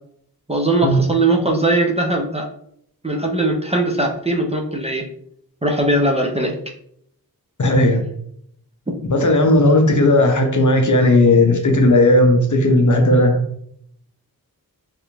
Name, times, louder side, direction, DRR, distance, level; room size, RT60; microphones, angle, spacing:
voice 1, 0.5-2.5 3.0-5.0 5.6-6.5, right 2 dB, 15° right, 0 dB, 0.5 m, -19 dB
voice 2, 7.6-8.0 9.1-13.4, left 1 dB, 55° left, 4 dB, 0.6 m, -15 dB
3.3 x 2.5 x 3.0 m, 0.70 s
wide cardioid pair, 55°, 37 cm